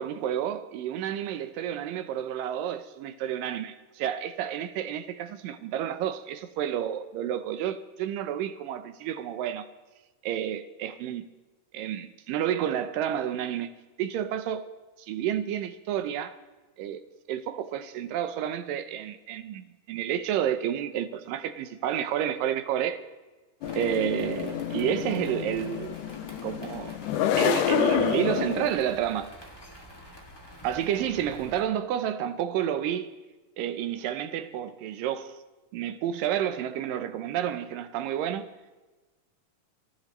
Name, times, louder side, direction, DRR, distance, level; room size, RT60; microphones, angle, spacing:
voice 1, 0.0-9.7 10.2-11.3 11.7-13.7 14.0-14.7 15.0-16.4 16.8-17.0 17.3-23.0 23.8-26.0 26.4-27.0 27.4-29.3 30.6-33.1 33.6-35.4 35.7-38.5, right 10 dB, 80° right, 2.4 m, -30 dB
sound 1, 23.6-28.7, left 10 dB, 75° left, 2.2 m, -28 dB
sound 2, 23.6-31.6, equal, 10° left, 1.9 m, -48 dB
26.0 x 15.0 x 3.1 m
omnidirectional pair, 4.0 m